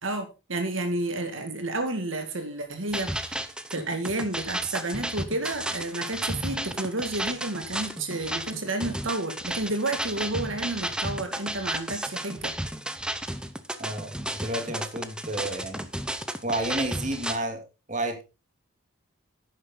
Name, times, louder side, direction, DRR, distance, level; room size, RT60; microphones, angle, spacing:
voice 1, 0.0-3.4 3.7-12.5, right 2 dB, 80° right, 6 dB, 2.1 m, -31 dB
sound 1, 2.9-17.4, right 1 dB, 5° right, 0.8 m, -33 dB
voice 2, 13.8-15.9 16.4-17.6 17.9-18.2, right 1 dB, 40° right, 5 dB, 2.3 m, -31 dB
11.0 x 9.6 x 3.8 m, 0.29 s
head